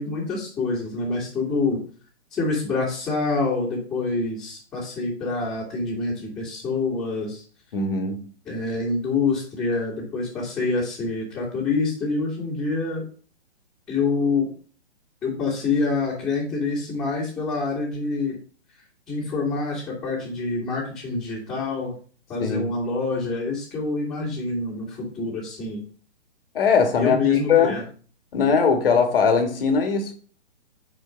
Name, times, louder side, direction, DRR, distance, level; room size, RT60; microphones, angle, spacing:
voice 1, 0.0-1.8 2.3-7.4 8.5-13.0 13.9-14.5 15.2-18.4 19.1-21.9 22.3-25.8 27.0-27.8, left 3 dB, 10° left, 2.1 m, -26 dB
voice 2, 7.7-8.3 22.4-22.7 26.5-27.8 28.3-30.1, left 5 dB, 55° left, 1.5 m, -20 dB
4.7 x 4.5 x 5.1 m
hypercardioid pair, 135°, 33 cm